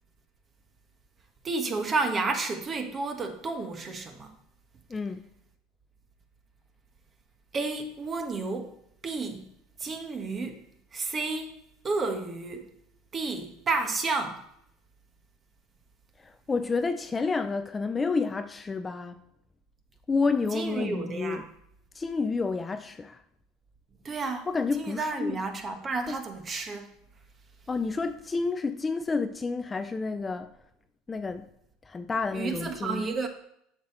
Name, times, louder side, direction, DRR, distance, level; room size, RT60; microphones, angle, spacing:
voice 1, 1.4-4.3 7.5-8.7 9.0-9.5 9.8-10.6 10.9-11.5 11.8-12.7 13.1-14.4 20.5-21.4 24.0-26.9 32.3-33.3, right 3 dB, 30° right, 1.2 m, -31 dB
voice 2, 4.9-5.2 16.2-19.2 20.1-21.4 21.9-23.2 24.5-25.4 26.1-26.2 27.7-30.5 31.1-31.5 31.9-33.0, left 4 dB, 20° left, 0.5 m, -29 dB
7.4 x 5.9 x 4.4 m
supercardioid pair, 100°, 0 cm